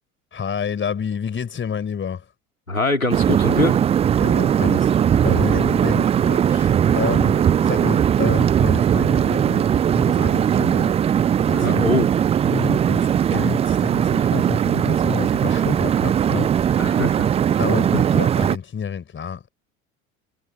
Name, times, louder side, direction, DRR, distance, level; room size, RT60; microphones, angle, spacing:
voice 1, 0.3-2.3 4.2-12.0 12.5-16.8 17.6-19.5, left 7 dB, 30° left, 4.9 m, -29 dB
voice 2, 2.7-3.8 11.5-12.1 16.8-17.3, left 2 dB, 90° left, 2.6 m, -23 dB
sound 1, 3.1-18.6, right 9 dB, 15° right, 0.4 m, -19 dB
figure-of-eight pair, 65°, 40 cm